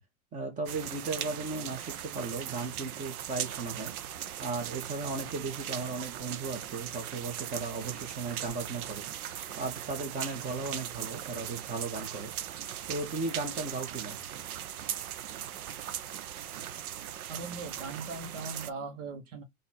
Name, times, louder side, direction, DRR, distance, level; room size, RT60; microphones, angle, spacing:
voice 1, 0.3-3.9 4.4-9.0 9.6-12.3 12.9-14.2, right 3 dB, 15° right, 1.4 m, -36 dB
sound 1, 0.7-18.7, right 10 dB, 75° right, 0.7 m, -39 dB
voice 2, 17.3-19.4, right 4 dB, 55° right, 1.2 m, -39 dB
4.0 x 2.7 x 4.3 m
hypercardioid pair, 130°, 44 cm